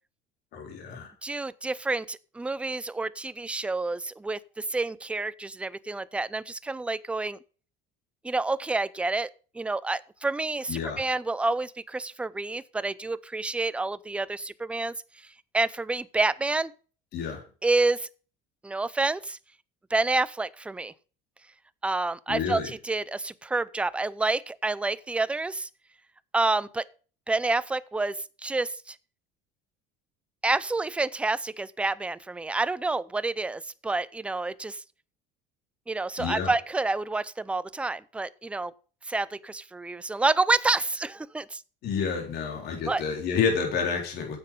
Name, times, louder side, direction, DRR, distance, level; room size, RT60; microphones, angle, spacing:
voice 1, 0.5-1.1 10.7-11.0 17.1-17.4 22.3-22.7 36.2-36.5 41.8-44.4, left 6 dB, 60° left, 3.9 m, -29 dB
voice 2, 1.2-7.4 8.2-9.3 9.5-14.9 15.5-16.7 17.6-18.1 18.6-19.4 19.9-20.9 21.8-25.7 26.3-26.8 27.3-29.0 30.4-34.8 35.9-38.7 39.1-41.6 42.9-43.0, right 3 dB, 5° right, 0.4 m, -28 dB
9.7 x 7.6 x 5.2 m
cardioid pair, 120°, 19 cm